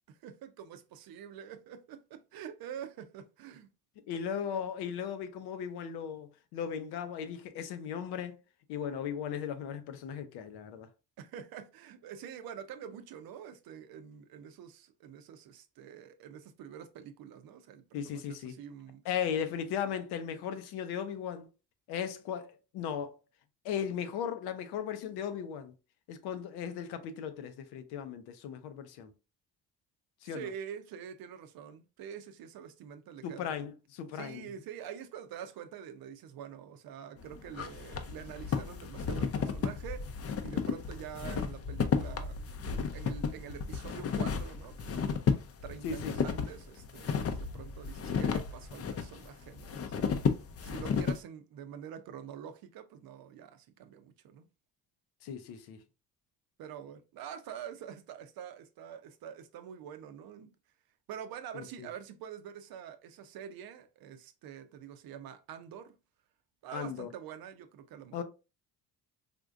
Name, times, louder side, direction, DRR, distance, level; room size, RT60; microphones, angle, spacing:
voice 1, 0.1-3.7 11.2-19.0 30.2-33.6 34.1-40.2 40.4-42.4 42.9-45.3 45.6-50.2 50.6-54.5 56.6-60.5 61.1-65.9 66.6-68.2, right 8 dB, 65° right, 0.6 m, -46 dB
voice 2, 4.1-8.4 8.7-10.9 17.9-18.5 19.0-21.5 21.9-23.1 23.6-25.7 26.1-29.1 30.2-30.5 33.2-34.4 45.8-46.1 55.2-55.8 61.5-61.9 66.7-67.1 68.1-68.2, left 8 dB, 80° left, 0.6 m, -37 dB
sound 1, 37.2-51.2, left 6 dB, 40° left, 0.5 m, -33 dB
3.6 x 2.6 x 2.4 m
supercardioid pair, 65°, 38 cm